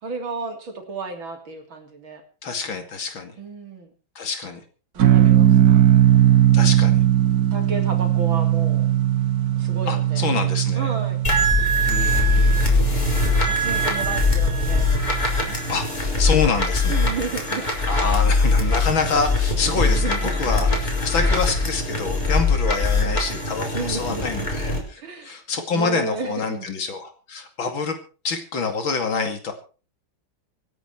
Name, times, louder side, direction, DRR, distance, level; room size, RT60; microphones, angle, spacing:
voice 1, 0.0-2.2 3.4-3.9 4.9-5.8 7.5-8.9 9.6-10.3 10.8-11.2 13.4-15.0 16.9-17.7 19.7-20.5 23.7-24.5 25.0-25.4 25.7-26.7, right 3 dB, 85° right, 4 dB, 3.9 m, -33 dB
voice 2, 2.4-3.4 4.2-4.6 6.5-7.0 9.9-10.9 11.9-13.7 15.7-17.3 17.9-28.0 28.2-29.5, left 4 dB, 80° left, 6 dB, 3.3 m, -27 dB
sound 1, 5.0-15.5, right 11 dB, 55° right, 1.5 m, -19 dB
sound 2, 11.2-24.8, left 2 dB, 20° left, 4.8 m, -21 dB
25.5 x 9.1 x 4.5 m, 0.37 s
omnidirectional pair, 2.1 m